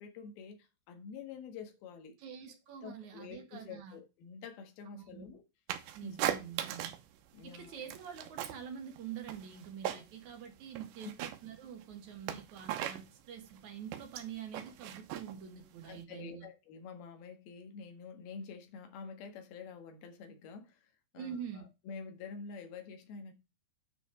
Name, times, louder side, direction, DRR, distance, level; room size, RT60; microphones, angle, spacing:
voice 1, 0.0-2.1 2.8-5.4 6.0-6.3 7.3-7.8 15.8-20.8 21.1-23.3, left 5 dB, 65° left, 3.2 m, -48 dB
voice 2, 2.2-4.0 4.9-5.3 5.9-6.9 7.4-16.5 21.1-21.7, right 8 dB, 60° right, 2.1 m, -46 dB
sound 1, 5.7-7.1 7.4-8.7 9.0-10.3 10.6-16.0, right 11 dB, 75° right, 3.2 m, -39 dB
9.8 x 5.1 x 4.9 m
omnidirectional pair, 5.3 m